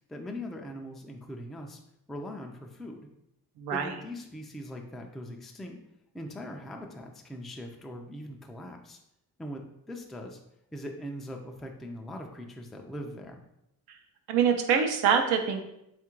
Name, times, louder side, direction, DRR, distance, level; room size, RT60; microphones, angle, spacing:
voice 1, 0.1-1.8 2.1-3.1 3.7-5.8 6.1-9.0 9.4-10.4 10.7-13.4, left 1 dB, ahead, 2 dB, 0.3 m, -41 dB
voice 2, 3.6-3.9 13.9-14.0 14.3-15.6, right 7 dB, 85° right, 5 dB, 0.6 m, -25 dB
3.6 x 2.4 x 4.4 m, 0.82 s
cardioid pair, 110°, 38 cm